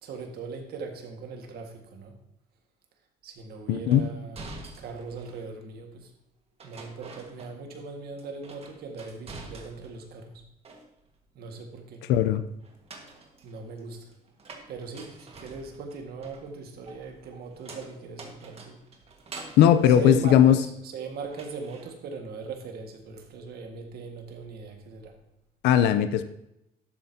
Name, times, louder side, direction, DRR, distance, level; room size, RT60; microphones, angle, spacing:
voice 1, 0.0-2.2 3.2-6.1 6.6-10.4 11.3-12.1 13.4-14.1 14.7-18.8 19.9-25.2, right 4 dB, 70° right, 3 dB, 1.7 m, -39 dB
voice 2, 3.7-4.0 12.1-12.4 19.6-20.6 25.6-26.2, left 10 dB, 85° left, 11 dB, 0.6 m, -18 dB
sound 1, 3.9-5.5 6.6-7.9 8.2-10.1 10.4-11.2 12.6-20.9 21.3-21.9, right 3 dB, 35° right, 1.6 m, -47 dB
12.0 x 7.8 x 2.8 m, 0.83 s
cardioid pair, 110°, 17 cm